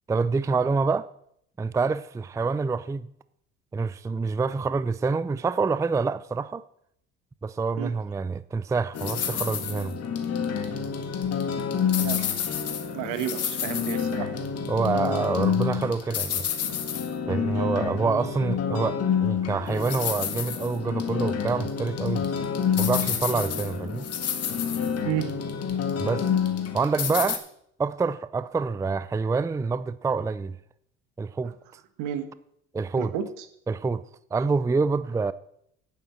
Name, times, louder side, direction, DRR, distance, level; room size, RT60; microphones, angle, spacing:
voice 1, 0.1-1.1 1.6-3.1 3.7-6.6 7.4-10.0 14.7-16.5 17.3-22.3 22.8-24.1 26.0-26.3 26.7-27.4 27.8-30.6 31.2-31.5 32.7-33.1 33.7-34.0 34.3-35.3, right 4 dB, 10° right, 0.4 m, -26 dB
sound 1, 8.9-27.4, left 7 dB, 50° left, 1.8 m, -28 dB
voice 2, 12.0-12.3 12.9-14.3 25.0-25.3 31.4-31.5 32.0-32.3 33.0-33.5, right 9 dB, 70° right, 1.4 m, -31 dB
8.9 x 8.8 x 7.5 m
hypercardioid pair, 65°, 31 cm